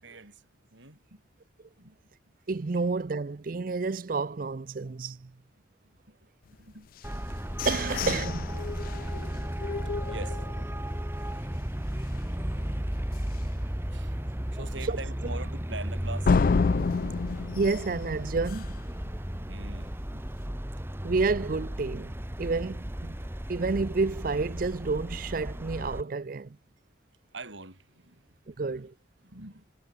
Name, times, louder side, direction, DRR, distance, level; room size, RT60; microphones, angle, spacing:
voice 1, 0.0-0.5 0.7-1.2 1.8-2.0 5.8-6.2 6.6-6.9 8.9-9.0 9.8-11.5 13.5-16.4 19.0-20.2 27.3-28.9 29.2-29.6, right 3 dB, 75° right, 6.6 m, -45 dB
voice 2, 2.5-5.3 7.6-8.6 14.9-15.0 17.5-18.7 21.0-23.1 23.5-26.6 28.5-28.9, right 4 dB, 45° right, 0.5 m, -30 dB
sound 1, 7.0-10.9 11.3-11.4 11.8-12.2 12.6-12.7 13.2-13.3 16.2-18.9, left 4 dB, 45° left, 0.3 m, -30 dB
Traffic noise roadway noise, 7.0-26.0, equal, 10° right, 1.2 m, -34 dB
head